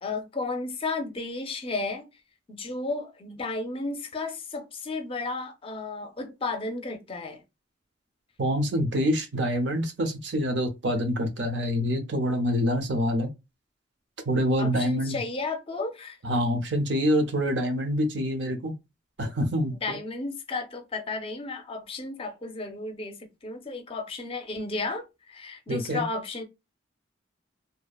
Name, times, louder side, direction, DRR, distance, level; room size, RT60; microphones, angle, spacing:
voice 1, 0.0-2.1 2.5-7.4 14.6-16.2 19.7-26.4, left 3 dB, 30° left, 0.5 m, -33 dB
voice 2, 8.4-13.3 14.3-15.2 16.2-18.7 19.2-20.0 25.7-26.0, equal, 65° right, 0.7 m, -26 dB
2.8 x 2.1 x 2.3 m
head